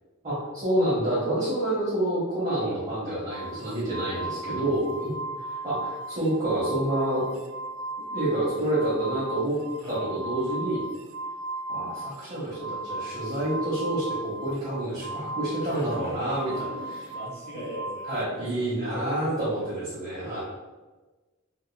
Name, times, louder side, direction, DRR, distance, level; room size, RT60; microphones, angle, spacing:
voice 1, 0.2-7.3 8.1-9.6 9.9-10.8 11.7-16.5 18.1-20.4, right 1 dB, 30° right, -11 dB, 1.1 m, -28 dB
sound 1, 3.3-18.2, right 2 dB, 75° right, 0.3 m, -36 dB
voice 2, 9.8-10.1 15.6-18.1 18.5-19.8, equal, 50° left, -5 dB, 1.3 m, -40 dB
3.8 x 3.0 x 2.3 m, 1.2 s
head